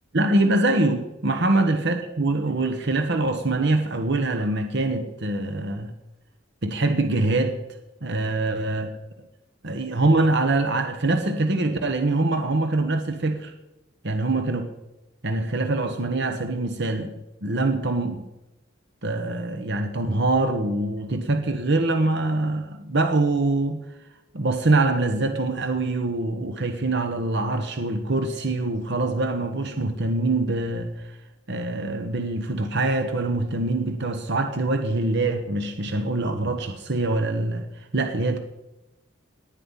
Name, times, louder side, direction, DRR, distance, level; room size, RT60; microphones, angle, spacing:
voice 1, 0.1-5.9 6.6-7.6 8.0-8.9 9.6-13.5 14.0-14.6 15.2-17.1 17.4-18.3 19.0-23.8 24.3-31.2 31.5-38.4, right 2 dB, 60° right, 6 dB, 1.4 m, -24 dB
18.5 x 10.0 x 5.7 m, 0.94 s
head